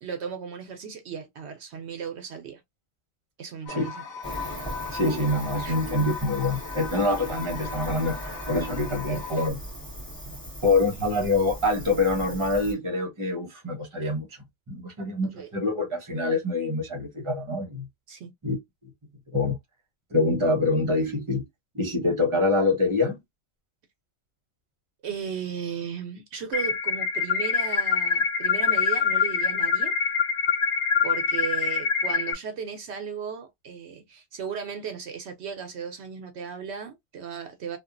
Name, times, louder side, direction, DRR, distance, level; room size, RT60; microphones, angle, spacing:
voice 1, 0.0-2.6 3.4-4.0 5.6-5.8 10.2-10.3 15.3-15.5 18.1-18.3 25.0-30.0 31.0-37.8, right 7 dB, 75° right, 0.9 m, -36 dB
sound 1, 3.7-9.5, left 5 dB, 75° left, 1.0 m, -38 dB
Cricket, 4.2-12.7, equal, 5° left, 1.7 m, -38 dB
voice 2, 4.9-9.6 10.6-14.3 14.7-17.9 18.4-18.6 19.3-19.6 20.1-21.4 21.7-23.2, left 2 dB, 30° right, 1.0 m, -25 dB
sound 2, 26.5-32.3, left 5 dB, 55° left, 0.5 m, -24 dB
2.8 x 2.4 x 2.5 m
omnidirectional pair, 1.2 m